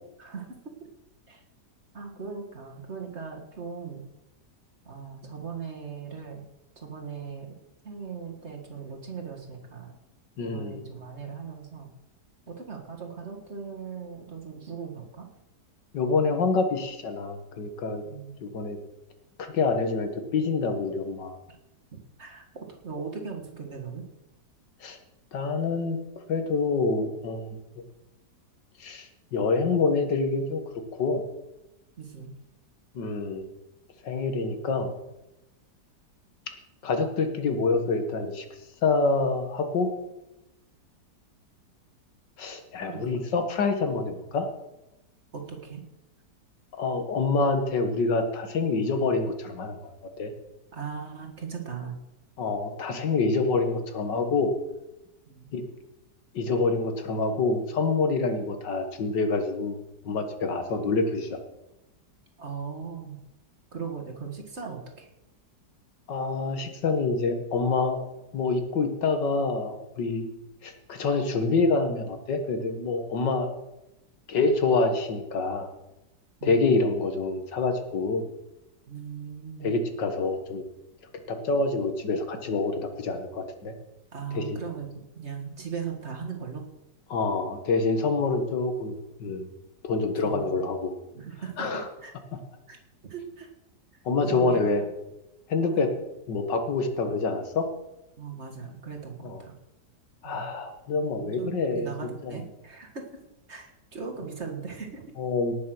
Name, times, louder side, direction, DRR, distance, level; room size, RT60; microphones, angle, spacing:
voice 1, 0.2-0.7 1.3-1.4 1.9-4.0 4.8-6.4 6.8-7.6 7.8-9.9 10.4-11.9 12.5-15.3 18.0-18.4 21.9-24.1 32.0-32.3 42.8-43.2 45.3-45.8 50.7-52.0 55.3-55.5 62.4-63.2 63.7-65.1 76.4-76.7 78.9-79.7 84.1-84.9 85.2-86.6 90.2-90.6 91.1-92.1 92.7-92.8 93.0-93.5 94.3-94.9 95.7-95.8 98.2-99.5 100.2-100.5 101.1-103.1 103.5-105.0, right 6 dB, 40° right, 2 dB, 2.0 m, -38 dB
voice 2, 10.4-10.9 15.9-18.0 18.4-18.8 19.4-21.4 24.8-25.0 25.3-26.0 26.3-27.6 28.8-30.6 31.0-31.2 33.0-33.5 34.0-34.9 36.8-38.5 38.8-39.9 42.4-44.5 46.7-49.8 50.2-50.3 52.4-54.5 55.5-55.6 56.3-59.8 60.1-61.4 66.1-68.0 68.3-70.3 70.6-73.5 74.3-75.7 76.4-78.2 79.6-80.6 81.3-83.7 84.3-84.6 87.1-89.5 89.8-90.9 91.6-91.9 94.1-94.8 95.5-95.9 96.3-97.7 99.2-99.4 100.2-102.4 105.2-105.5, left 3 dB, 85° left, 7 dB, 2.1 m, -26 dB
18.0 x 6.4 x 6.1 m, 0.94 s
omnidirectional pair, 1.9 m